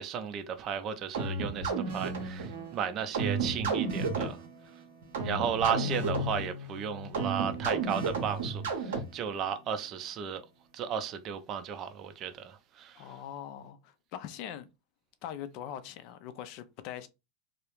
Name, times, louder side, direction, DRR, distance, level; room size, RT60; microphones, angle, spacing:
voice 1, 0.0-4.4 5.2-10.4 10.7-13.1, right 8 dB, 40° right, 0.4 m, -34 dB
sound 1, 1.1-9.4, right 3 dB, 80° right, 0.7 m, -33 dB
voice 2, 13.0-14.7 15.2-17.1, left 10 dB, 55° left, 0.4 m, -42 dB
2.3 x 2.0 x 2.9 m
hypercardioid pair, 100°, 0 cm